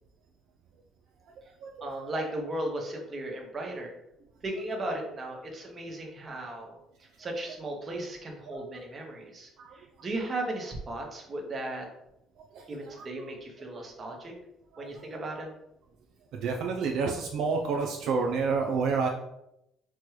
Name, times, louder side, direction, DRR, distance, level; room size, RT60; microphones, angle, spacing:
voice 1, 1.8-3.9 4.4-6.8 7.2-11.9 12.7-14.3 14.8-15.5, right 1 dB, 35° right, 1 dB, 0.9 m, -36 dB
voice 2, 16.4-19.1, right 4 dB, 70° right, 1 dB, 0.4 m, -28 dB
4.4 x 2.2 x 3.1 m, 0.83 s
cardioid pair, 95°, 0 cm